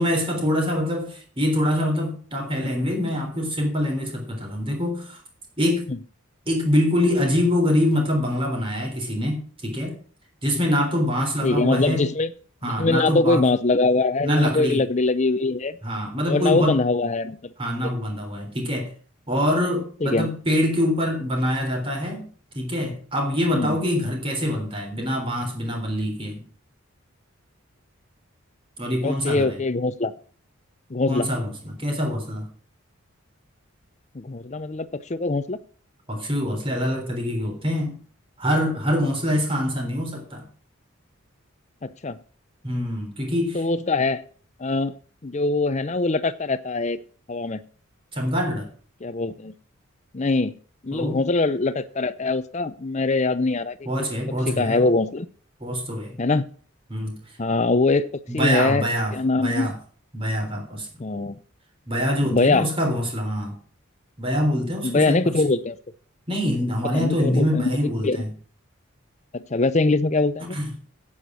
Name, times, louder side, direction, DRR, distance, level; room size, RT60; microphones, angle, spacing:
voice 1, 0.0-5.2 5.6-5.9 6.4-10.0 10.4-12.1 12.6-13.5 14.2-14.8 15.8-16.7 17.6-18.9 19.3-22.3 22.5-26.4 28.8-29.6 31.1-32.5 36.1-37.9 38.4-40.5 42.6-43.6 48.1-48.7 50.9-51.2 53.8-54.9 55.6-56.2 56.9-57.2 58.3-59.8 60.1-60.9 61.9-63.5 64.2-65.2 66.3-68.3 70.5-70.7, equal, 25° right, 3.5 m, -24 dB
voice 2, 11.4-12.3 12.6-15.8 16.3-17.5 17.8-17.9 20.0-20.3 23.5-23.8 29.0-30.1 30.9-31.3 34.1-35.6 41.8-42.2 43.5-44.3 44.6-44.9 45.2-47.0 47.3-47.6 49.0-49.5 50.1-50.5 50.8-53.8 54.5-55.3 56.2-56.5 57.4-58.8 59.1-59.7 61.0-61.4 62.2-62.7 64.8-65.8 66.9-68.2 69.3-70.6, left 3 dB, 35° left, 0.6 m, -23 dB
9.2 x 8.7 x 6.2 m
head